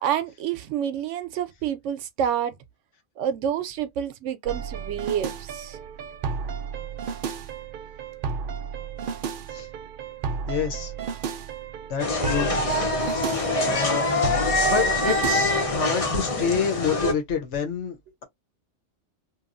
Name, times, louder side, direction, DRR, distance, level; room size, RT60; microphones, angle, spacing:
voice 1, 0.0-2.5 3.2-5.8 12.9-13.1 13.6-13.7 15.6-15.7, right 9 dB, 80° right, 0.9 m, -28 dB
sound 1, 4.5-15.8, right 6 dB, 60° right, 0.6 m, -33 dB
voice 2, 10.5-10.9 11.9-12.6 13.6-14.1 14.6-18.2, left 7 dB, 75° left, 1.1 m, -28 dB
sound 2, 12.0-17.1, left 2 dB, 35° left, 0.7 m, -24 dB
2.9 x 2.3 x 2.5 m
omnidirectional pair, 1.2 m